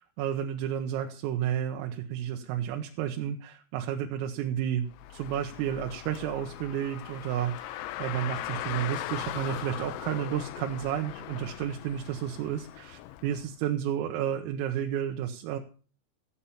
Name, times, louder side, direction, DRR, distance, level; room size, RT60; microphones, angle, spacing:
voice 1, 0.0-15.6, right 10 dB, 85° right, 4 dB, 3.6 m, -32 dB
Car, 4.9-13.5, left 14 dB, 80° left, 2.9 m, -39 dB
15.0 x 8.6 x 5.6 m, 0.40 s
omnidirectional pair, 5.8 m